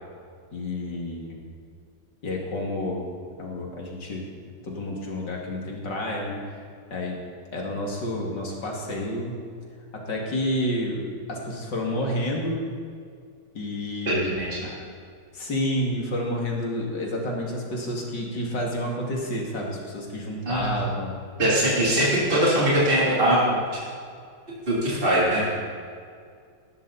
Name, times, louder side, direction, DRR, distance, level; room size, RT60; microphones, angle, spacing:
voice 1, 0.5-1.4 2.2-3.1 3.4-4.3 4.6-6.4 6.9-7.2 7.5-9.3 9.9-12.6 13.5-14.4 15.3-21.2, left 1 dB, 60° left, -1 dB, 3.3 m, -29 dB
voice 2, 14.1-14.7 20.5-20.8 21.4-23.6 24.7-25.6, right 1 dB, 25° right, -7 dB, 3.8 m, -22 dB
19.5 x 13.5 x 4.3 m, 2.2 s
omnidirectional pair, 2.1 m